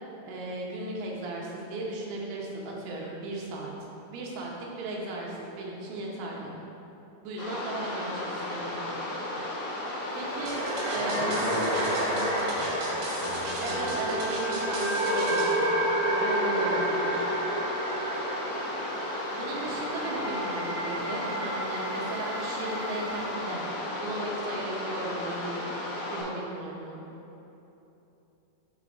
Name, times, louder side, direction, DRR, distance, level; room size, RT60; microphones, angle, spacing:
voice 1, 0.2-3.7 4.1-6.5 7.2-9.0 10.1-10.6 10.9-11.3 13.6-15.7 16.2-17.3 19.3-23.6 24.0-25.7 26.1-27.0, right 2 dB, 85° right, -2 dB, 3.3 m, -36 dB
sound 1, 7.4-26.2, left 1 dB, 60° left, 2.7 m, -34 dB
sound 2, 10.1-23.5, right 1 dB, 55° right, 2.3 m, -31 dB
sound 3, 10.5-15.6, right 2 dB, 70° right, 3.1 m, -40 dB
voice 2, 11.1-12.8 13.2-14.0, left 1 dB, 75° left, -13 dB, 1.2 m, -38 dB
7.1 x 5.1 x 3.9 m, 2.9 s
omnidirectional pair, 5.3 m